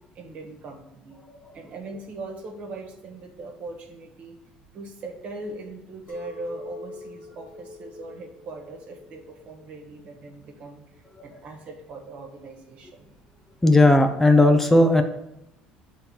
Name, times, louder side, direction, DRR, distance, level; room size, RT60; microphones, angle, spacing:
voice 1, 0.1-1.2 1.5-4.4 4.7-13.1, right 2 dB, 55° right, 2 dB, 1.4 m, -40 dB
Chink clink, 6.1-11.3, left 3 dB, 60° left, 1.3 m, -45 dB
voice 2, 13.6-15.0, left 2 dB, 10° left, 6 dB, 0.5 m, -16 dB
6.7 x 3.6 x 4.4 m, 0.86 s
supercardioid pair, 85°, 3 cm